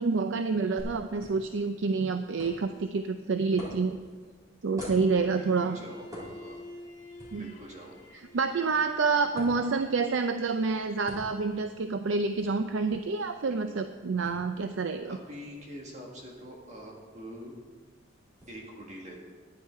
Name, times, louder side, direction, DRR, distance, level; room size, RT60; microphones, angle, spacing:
voice 1, 0.0-4.0 4.6-5.8 7.3-7.5 8.3-15.2, right 4 dB, 80° right, 8 dB, 0.5 m, -28 dB
sound 1, 0.8-18.5, equal, 20° right, 3.9 m, -49 dB
voice 2, 5.1-6.6 7.3-7.9 15.1-17.5 18.5-19.2, equal, 40° right, -1 dB, 1.8 m, -45 dB
Bowed string instrument, 5.3-10.2, left 1 dB, 35° left, 2.1 m, -49 dB
11.5 x 9.9 x 4.6 m, 1.5 s
head